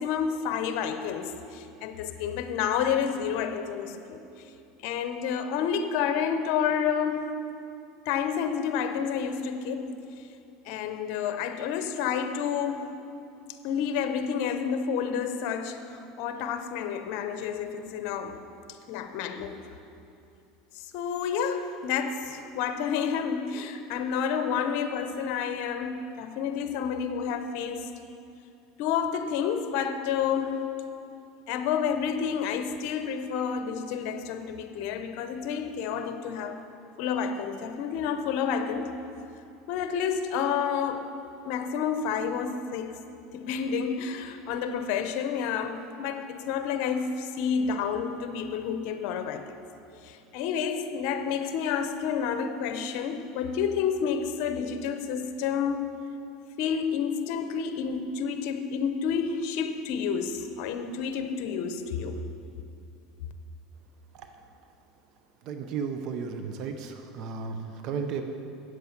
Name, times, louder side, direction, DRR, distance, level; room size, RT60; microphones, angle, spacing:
voice 1, 0.0-4.2 4.8-7.4 8.1-10.0 10.6-12.9 13.6-18.4 18.7-19.6 20.7-27.9 28.8-30.7 31.5-36.6 37.0-39.0 39.7-41.1 41.4-43.0 43.3-49.5 50.0-55.9 56.6-62.2, left 7 dB, 65° left, 8 dB, 0.7 m, -30 dB
voice 2, 65.5-68.2, right 6 dB, 55° right, 7 dB, 0.7 m, -34 dB
8.1 x 7.9 x 5.9 m, 2.7 s
supercardioid pair, 110°, 0 cm